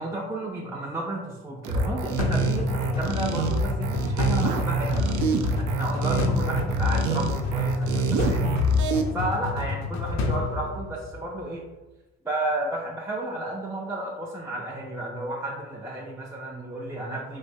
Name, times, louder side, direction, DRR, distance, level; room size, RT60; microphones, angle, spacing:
voice 1, 0.0-8.5 9.1-11.6 12.2-17.4, right 1 dB, 10° right, -3 dB, 0.4 m, -32 dB
sound 1, 1.6-9.0, right 2 dB, 75° right, 0.4 m, -26 dB
sound 2, 2.2-11.4, left 3 dB, 65° left, 0.5 m, -29 dB
3.1 x 2.8 x 2.6 m, 1.1 s
cardioid pair, 90°, 30 cm